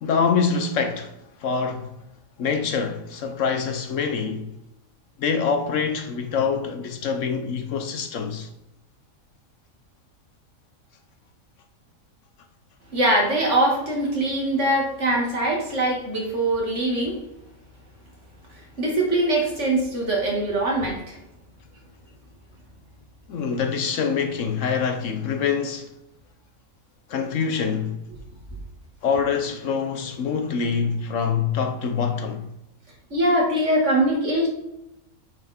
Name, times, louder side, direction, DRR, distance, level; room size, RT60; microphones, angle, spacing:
voice 1, 0.0-2.0 2.4-4.5 5.2-8.5 23.3-25.9 27.1-28.0 29.0-32.5, left 6 dB, 65° left, 1.0 m, -25 dB
voice 2, 12.9-17.2 18.8-21.2 33.1-34.5, right 1 dB, 55° right, 2.4 m, -22 dB
8.7 x 4.4 x 4.3 m
omnidirectional pair, 1.5 m